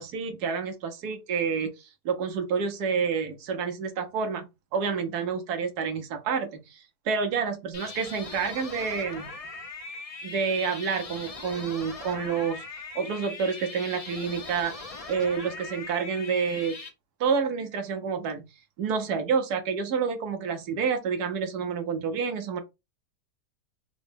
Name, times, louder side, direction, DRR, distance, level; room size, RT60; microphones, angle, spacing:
voice 1, 0.0-1.7 2.0-4.4 4.7-9.3 10.2-12.6 12.9-16.8 17.2-18.4 18.8-22.6, right 6 dB, 75° right, 1.2 m, -29 dB
sound 1, 7.7-16.9, left 3 dB, 60° left, 0.3 m, -40 dB
3.8 x 2.1 x 3.3 m
omnidirectional pair, 1.7 m